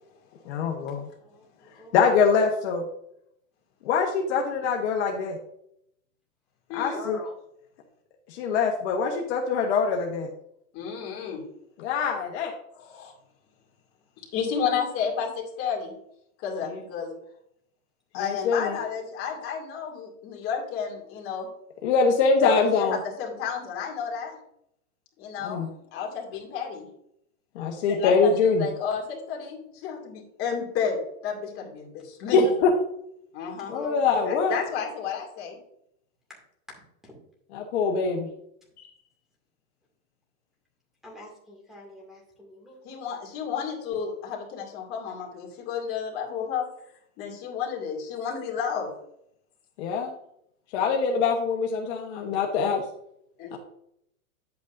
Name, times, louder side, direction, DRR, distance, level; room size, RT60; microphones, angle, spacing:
voice 1, 0.5-1.0 1.9-2.8 3.8-5.4 6.7-7.2 8.3-10.3 11.8-12.5 18.1-18.8 21.8-23.0 25.4-25.7 27.5-28.7 32.3-32.7 33.7-34.6 37.5-38.3 38.8-38.9 49.8-50.1 50.7-52.8 53.5-53.6, left 5 dB, 50° left, 1 dB, 1.2 m, -24 dB
voice 2, 1.2-2.0 6.9-7.4 33.7-34.3 37.0-37.2 41.0-43.0, equal, ahead, -3 dB, 2.3 m, -43 dB
voice 3, 6.7-7.0 10.7-11.4 12.8-13.1 14.3-15.9 16.4-17.1 18.1-21.5 22.4-24.4 25.2-25.6 25.9-26.9 27.9-31.0 31.2-32.4 33.3-33.7 34.2-35.6 42.8-46.7 47.2-48.9 53.4-53.6, left 7 dB, 30° left, -1 dB, 2.4 m, -31 dB
9.9 x 8.3 x 2.6 m, 0.75 s
supercardioid pair, 155°, 42 cm